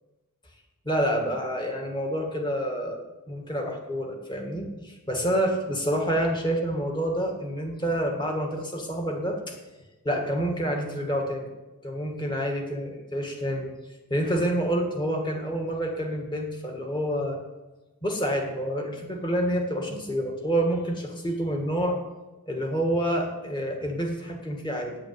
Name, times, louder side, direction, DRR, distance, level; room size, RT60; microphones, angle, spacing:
voice 1, 0.8-9.4 10.0-11.5 11.8-13.7 14.1-17.4 18.0-22.0 22.5-25.0, equal, 20° left, 2 dB, 1.8 m, -28 dB
9.2 x 8.7 x 7.8 m, 1.1 s
head